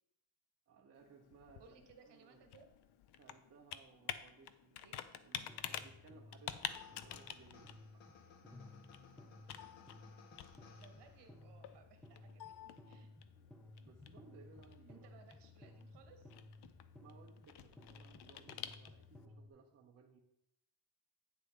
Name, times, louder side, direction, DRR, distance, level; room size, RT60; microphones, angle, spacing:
voice 1, 0.7-1.6 2.1-2.4 3.2-5.0 5.2-8.0 13.3-15.1 17.0-20.2, right 4 dB, 30° right, 0 dB, 0.8 m, -62 dB
Computer keyboard, 0.9-19.2, left 10 dB, 60° left, 0.6 m, -50 dB
voice 2, 1.6-2.8 4.8-5.0 10.8-13.1 14.9-16.3, right 5 dB, 60° right, 5 dB, 1.5 m, -63 dB
sound 1, 5.5-19.5, left 2 dB, ahead, 0.4 m, -58 dB
sound 2, 6.7-11.4, left 5 dB, 85° left, 1.4 m, -62 dB
9.2 x 6.8 x 3.8 m, 0.79 s
cardioid pair, 165°, 46 cm